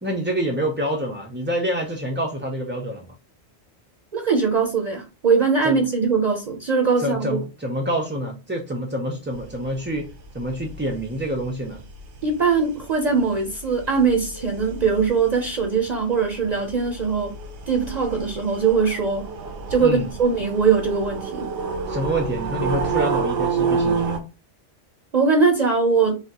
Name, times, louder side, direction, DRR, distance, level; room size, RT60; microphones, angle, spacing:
voice 1, 0.0-3.1 5.6-5.8 7.0-10.1 10.3-11.8 19.8-20.1 21.9-24.2, equal, 20° right, 0.3 m, -27 dB
voice 2, 4.1-7.4 12.2-17.3 17.7-19.2 19.7-21.5 25.1-26.2, right 5 dB, 45° right, 0.7 m, -21 dB
sound 1, 9.3-24.2, right 5 dB, 90° right, 1.0 m, -30 dB
4.9 x 2.7 x 2.8 m
omnidirectional pair, 1.1 m